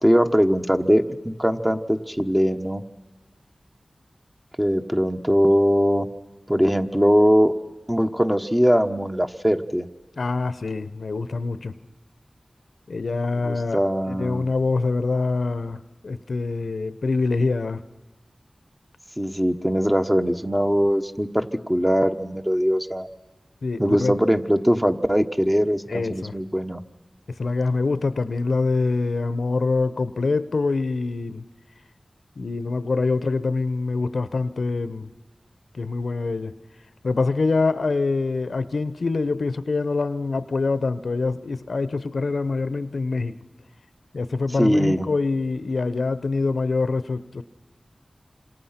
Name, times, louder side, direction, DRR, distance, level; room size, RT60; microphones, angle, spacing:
voice 1, 0.0-2.8 4.6-6.1 6.5-7.5 7.9-9.9 13.4-14.5 19.2-23.1 23.8-26.8 44.6-45.1, equal, 10° right, 6 dB, 1.3 m, -21 dB
voice 2, 10.2-11.7 12.9-13.8 14.1-17.8 23.6-24.2 25.9-26.4 27.4-31.4 32.4-35.1 35.7-36.5 37.0-43.4 44.1-47.4, left 3 dB, 85° left, 14 dB, 0.8 m, -25 dB
27.5 x 26.5 x 5.9 m, 1.2 s
wide cardioid pair, 75°, 0 cm